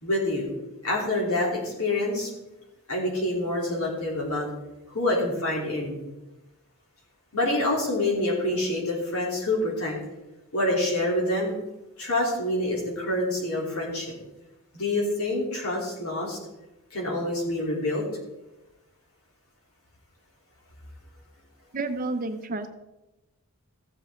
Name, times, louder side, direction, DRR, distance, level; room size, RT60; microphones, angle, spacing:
voice 1, 0.0-0.5 0.8-2.3 2.9-4.5 4.9-6.0 7.3-10.0 10.5-11.5 12.0-14.1 14.7-16.4 16.9-18.0, left 1 dB, 65° left, -2 dB, 3.4 m, -26 dB
voice 2, 21.7-22.7, right 2 dB, 40° right, 8 dB, 0.7 m, -30 dB
15.0 x 7.3 x 3.7 m, 1.0 s
head